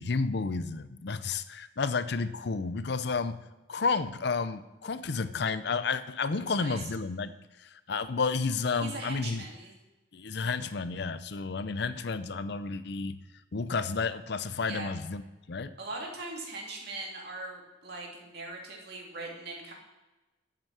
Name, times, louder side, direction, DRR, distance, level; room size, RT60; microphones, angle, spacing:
voice 1, 0.0-3.4 3.7-7.3 7.6-9.4 10.1-13.2 13.5-15.7, left 4 dB, 60° left, 13 dB, 0.6 m, -31 dB
voice 2, 6.4-6.8 8.7-9.8 14.7-14.9 15.8-19.7, right 2 dB, 60° right, -1 dB, 2.6 m, -40 dB
11.0 x 8.2 x 4.8 m, 1.1 s
head